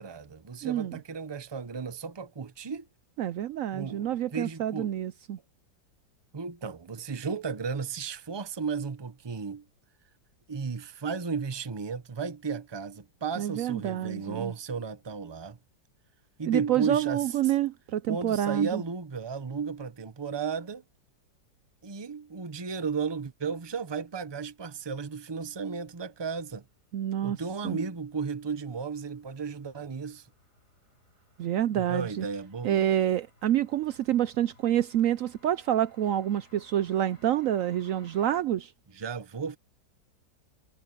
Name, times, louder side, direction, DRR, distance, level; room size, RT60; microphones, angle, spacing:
voice 1, 0.0-2.9 3.7-4.9 6.3-9.6 10.5-15.6 16.4-17.3 18.1-20.8 21.8-26.6 27.2-30.3 31.7-32.9 38.9-39.6, right 5 dB, 30° right, 0.4 m, -34 dB
voice 2, 0.6-1.0 3.2-5.4 13.4-14.5 16.5-18.8 26.9-27.8 31.4-32.2 32.6-38.7, right 11 dB, 75° right, 0.7 m, -28 dB
sound 1, 25.6-38.4, left 3 dB, 35° left, 5.1 m, -62 dB
omnidirectional pair, 1.9 m